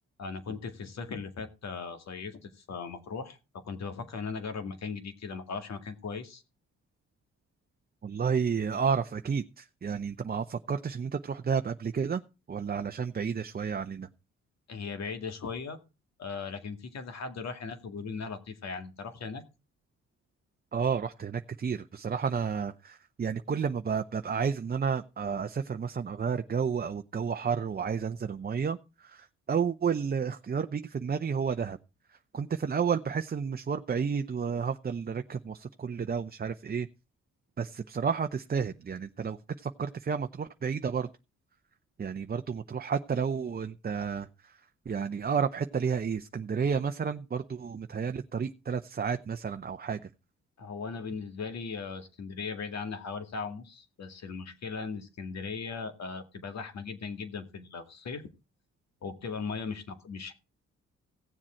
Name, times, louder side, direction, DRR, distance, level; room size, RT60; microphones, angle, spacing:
voice 1, 0.2-6.4 14.7-15.8 16.2-19.4 50.6-58.3 59.0-60.3, left 5 dB, 60° left, 8 dB, 2.2 m, -38 dB
voice 2, 8.0-12.2 12.5-14.1 20.7-31.8 32.3-36.9 37.6-41.1 42.0-44.6 44.9-50.1, right 6 dB, 30° right, 8 dB, 0.7 m, -31 dB
16.0 x 7.4 x 4.4 m, 0.30 s
supercardioid pair, 65°, 29 cm